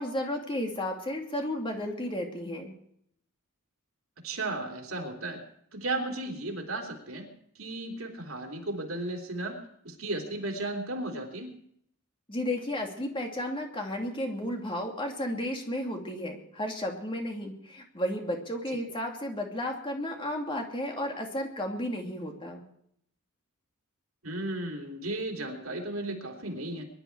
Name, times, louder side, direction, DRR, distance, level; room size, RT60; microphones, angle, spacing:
voice 1, 0.0-2.7 12.3-22.6, left 1 dB, 25° left, 2 dB, 2.7 m, -33 dB
voice 2, 4.2-5.4 5.7-7.3 7.5-11.5 24.2-26.9, right 2 dB, 70° right, 2 dB, 3.3 m, -35 dB
23.0 x 11.5 x 4.7 m, 0.69 s
head